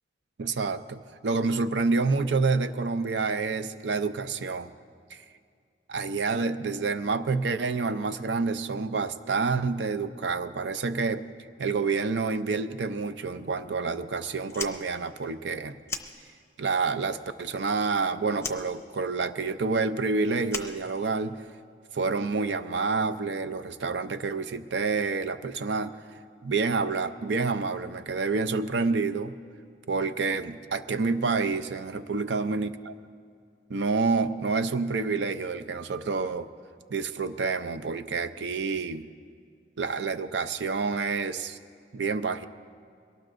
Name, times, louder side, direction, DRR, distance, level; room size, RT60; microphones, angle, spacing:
voice 1, 0.4-4.7 5.1-5.2 5.9-11.2 11.6-15.8 16.6-21.4 21.9-25.9 26.4-29.3 29.9-32.9 33.7-36.5 36.9-39.1 39.8-41.6 41.9-42.5, right 4 dB, 85° right, 11 dB, 0.5 m, -28 dB
Fire, 14.4-16.7 17.0-18.0 18.3-21.5, left 4 dB, 15° left, 0.6 m, -39 dB
22.0 x 18.0 x 2.6 m, 2.2 s
head